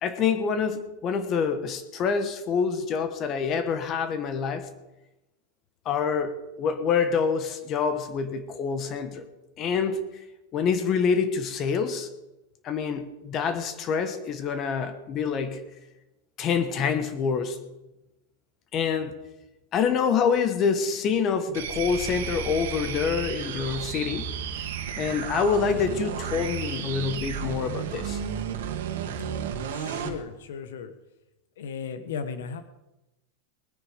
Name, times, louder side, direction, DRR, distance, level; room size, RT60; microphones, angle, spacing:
voice 1, 0.0-4.7 5.8-9.2 9.6-10.0 10.5-12.1 12.6-15.6 16.4-17.6 18.7-19.1 19.7-24.3 25.0-28.2, left 6 dB, 25° left, 10 dB, 1.2 m, -26 dB
sound 1, 21.5-30.2, right 7 dB, 85° right, 2.0 m, -33 dB
voice 2, 29.7-30.9 31.6-32.6, left 6 dB, 85° left, 10 dB, 1.3 m, -36 dB
20.0 x 9.8 x 5.1 m, 0.98 s
supercardioid pair, 170°, 0 cm